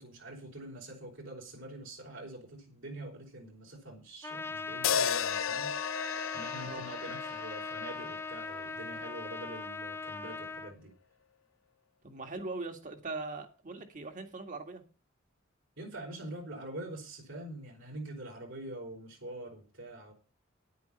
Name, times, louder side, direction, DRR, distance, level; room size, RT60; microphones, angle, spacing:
voice 1, 0.0-5.7 6.3-10.9 15.8-20.1, right 1 dB, 75° right, -1 dB, 4.9 m, -45 dB
Trumpet, 4.2-10.7, left 3 dB, 10° left, 0.7 m, -40 dB
sound 1, 4.8-9.1, left 8 dB, 80° left, 0.5 m, -34 dB
voice 2, 12.0-14.8, right 3 dB, 40° right, 5 dB, 2.0 m, -40 dB
10.5 x 9.4 x 5.7 m, 0.34 s
head